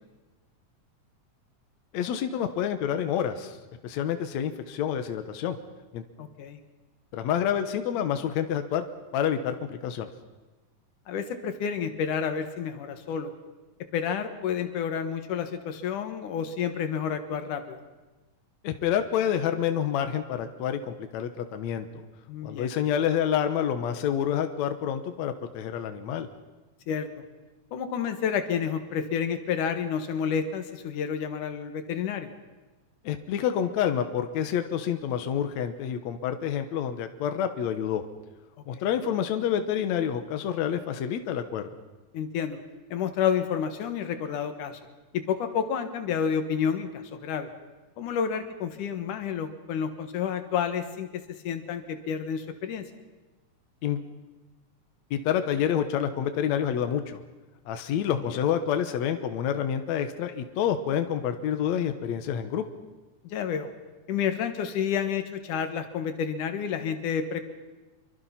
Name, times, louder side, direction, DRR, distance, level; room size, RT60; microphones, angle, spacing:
voice 1, 1.9-3.6 3.8-5.6 5.9-6.0 7.1-8.9 9.1-10.1 18.6-21.9 22.4-26.3 33.0-38.0 38.7-41.7 53.8-54.0 55.1-57.2 57.7-62.6, left 9 dB, 70° left, 8 dB, 2.3 m, -28 dB
voice 2, 6.2-6.6 11.1-13.3 13.9-17.8 22.3-22.7 26.9-27.1 27.7-32.3 38.7-38.9 42.1-42.6 42.9-44.8 45.1-47.5 48.0-52.8 58.1-58.4 63.2-63.7 64.1-67.4, left 7 dB, 85° left, 8 dB, 3.0 m, -30 dB
26.5 x 23.5 x 5.8 m, 1.2 s
omnidirectional pair, 3.5 m